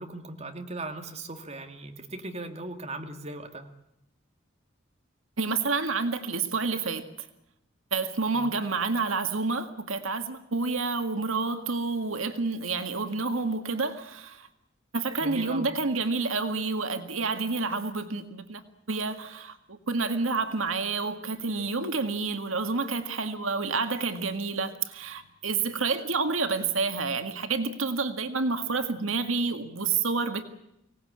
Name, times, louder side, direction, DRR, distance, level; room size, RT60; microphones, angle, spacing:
voice 1, 0.0-3.7 8.3-8.6 15.2-15.7, right 2 dB, 30° right, 5 dB, 2.4 m, -38 dB
voice 2, 5.4-7.3 7.9-14.5 14.9-18.6 18.9-30.4, right 4 dB, 85° right, 8 dB, 2.0 m, -29 dB
25.0 x 18.5 x 8.8 m, 0.83 s
head